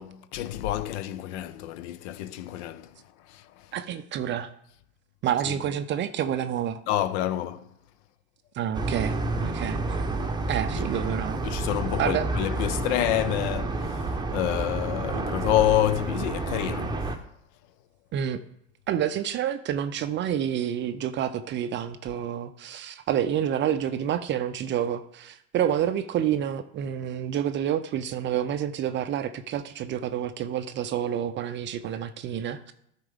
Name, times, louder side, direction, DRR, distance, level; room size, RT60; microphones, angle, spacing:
voice 1, 0.0-2.9 6.9-7.6 11.4-16.9, left 13 dB, 55° left, 0.7 m, -28 dB
voice 2, 3.7-4.5 5.2-6.8 8.5-10.1 10.5-11.4 12.0-12.3 18.1-18.4 18.9-32.7, right 10 dB, 30° right, 0.5 m, -28 dB
sound 1, 8.7-17.2, right 2 dB, 10° right, 0.9 m, -29 dB
13.0 x 4.5 x 3.6 m
hypercardioid pair, 90°, 42 cm